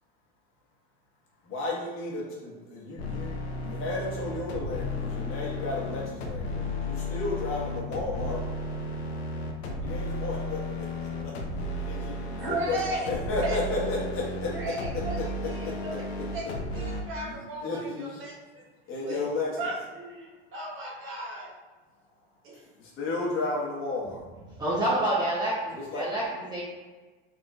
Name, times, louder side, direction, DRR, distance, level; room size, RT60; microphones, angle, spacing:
voice 1, 1.4-8.4 9.8-11.5 11.7-12.8 13.0-14.5 17.1-18.2 18.9-19.7 22.8-24.2 25.7-26.0, left 3 dB, 45° left, -4 dB, 1.3 m, -33 dB
sound 1, 3.0-17.0, left 1 dB, 90° left, 0.7 m, -34 dB
voice 2, 12.3-13.1 13.4-13.6 14.5-18.6 19.0-19.2 19.6-21.5 22.4-22.6, right 2 dB, 40° right, -4 dB, 1.2 m, -36 dB
voice 3, 24.6-25.5 25.9-26.6, right 1 dB, 15° right, -7 dB, 0.7 m, -27 dB
4.0 x 3.6 x 2.3 m, 1.3 s
supercardioid pair, 110°, 31 cm